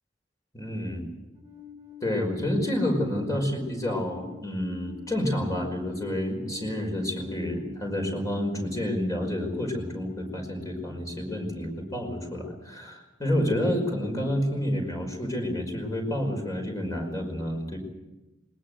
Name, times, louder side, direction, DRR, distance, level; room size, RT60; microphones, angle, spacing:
voice 1, 0.5-1.0 2.0-17.8, left 1 dB, 20° left, 2 dB, 5.2 m, -29 dB
Alarm, 1.3-10.3, left 9 dB, 15° right, 1.4 m, -46 dB
21.0 x 20.0 x 8.0 m, 1.1 s
head